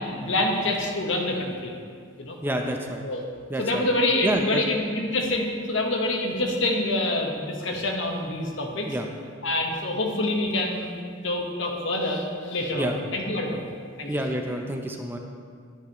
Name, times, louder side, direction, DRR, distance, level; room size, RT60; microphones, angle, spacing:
voice 1, 0.2-1.7 2.2-2.4 3.0-3.2 3.6-8.9 9.4-10.9 11.2-13.6 14.0-14.1, left 1 dB, 70° left, 1 dB, 1.3 m, -26 dB
voice 2, 2.4-3.0 3.5-3.9 4.2-4.6 8.9-9.1 12.7-13.0 14.1-15.2, right 1 dB, 10° right, 3 dB, 0.6 m, -28 dB
10.5 x 10.0 x 3.1 m, 2.1 s
head